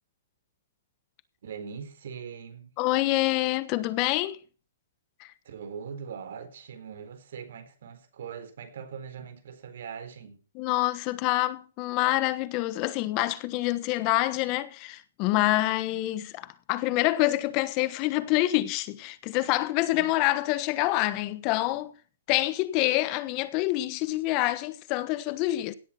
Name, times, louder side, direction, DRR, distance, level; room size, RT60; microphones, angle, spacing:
voice 1, 1.4-2.7 5.4-10.4 19.9-20.1, right 7 dB, 65° right, 4.0 m, -41 dB
voice 2, 2.8-4.4 5.2-5.3 10.5-21.9 22.3-25.7, left 17 dB, 35° left, 1.2 m, -26 dB
17.5 x 8.0 x 4.4 m
hypercardioid pair, 140°, 0 cm